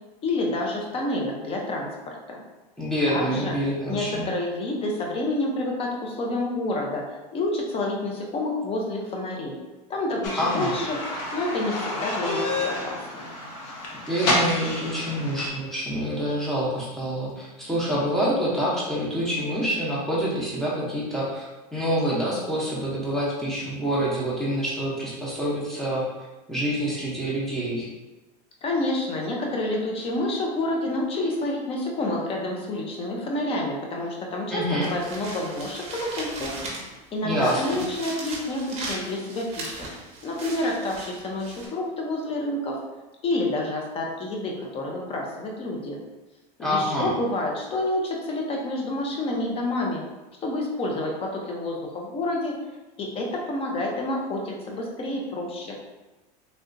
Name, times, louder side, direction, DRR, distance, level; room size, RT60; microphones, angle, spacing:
voice 1, 0.2-2.4 3.1-3.6 3.9-7.0 7.3-9.5 9.9-11.0 11.3-13.3 28.6-36.6 37.1-39.9 40.2-42.8 43.2-46.0 46.6-50.0 50.4-52.5 53.0-55.7, left 2 dB, 30° left, 0 dB, 0.7 m, -28 dB
voice 2, 2.8-4.2 10.4-10.7 14.1-26.1 26.5-27.9 34.5-34.9 37.2-37.8 46.6-47.1, equal, ahead, -6 dB, 0.9 m, -26 dB
sound 1, 10.2-15.5, left 1 dB, 70° left, 0.9 m, -29 dB
sound 2, 34.8-37.0 37.4-41.7, right 2 dB, 30° right, 0.8 m, -38 dB
3.3 x 2.7 x 2.6 m, 1.1 s
supercardioid pair, 135°, 20 cm